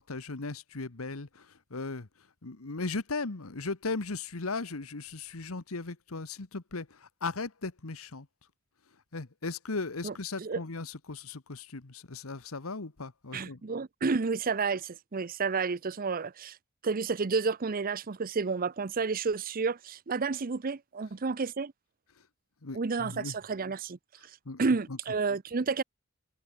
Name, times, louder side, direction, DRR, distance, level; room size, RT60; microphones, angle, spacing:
voice 1, 0.0-2.1 2.4-8.3 9.1-13.6 22.6-23.3 24.4-24.6, left 3 dB, 85° left, 1.3 m, -37 dB
voice 2, 10.0-10.6 13.3-16.6 16.8-21.7 22.7-25.8, right 4 dB, 45° right, 0.6 m, -31 dB
head